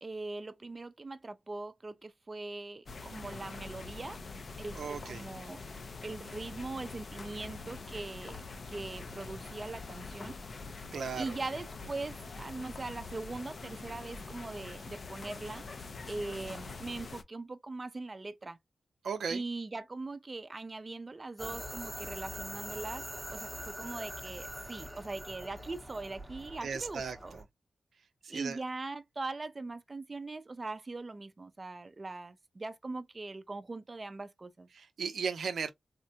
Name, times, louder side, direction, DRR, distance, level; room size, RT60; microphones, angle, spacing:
voice 1, 0.0-4.2 4.6-5.6 6.0-10.3 11.2-15.6 16.1-18.6 19.3-23.0 23.3-27.4 28.3-34.7, right 3 dB, 35° right, 0.4 m, -41 dB
sound 1, 2.9-17.2, left 3 dB, 55° left, 0.4 m, -45 dB
voice 2, 4.8-5.2 10.9-11.2 19.0-19.4 26.6-27.4 28.3-28.6 34.7-35.7, right 6 dB, 90° right, 0.5 m, -36 dB
sound 2, 21.4-27.4, equal, 5° right, 0.7 m, -43 dB
3.5 x 2.1 x 2.7 m
wide cardioid pair, 90°, 0 cm